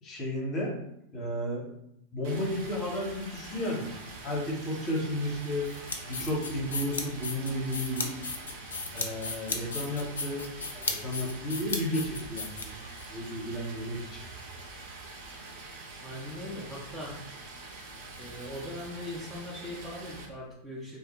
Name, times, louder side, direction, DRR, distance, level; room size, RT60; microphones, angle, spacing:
voice 1, 0.0-0.7 1.1-1.7 2.1-3.9 4.2-5.7 6.1-8.1 8.9-10.4 10.7-14.2, left 1 dB, 30° left, -3 dB, 0.8 m, -33 dB
Stream, 2.2-20.3, right 3 dB, 50° right, 0.6 m, -45 dB
sound 1, 5.6-13.1, left 4 dB, 70° left, 0.3 m, -36 dB
voice 2, 16.0-17.2 18.2-21.0, left 1 dB, 5° right, -6 dB, 0.6 m, -40 dB
2.4 x 2.0 x 2.9 m, 0.78 s
figure-of-eight pair, 90°, 0 cm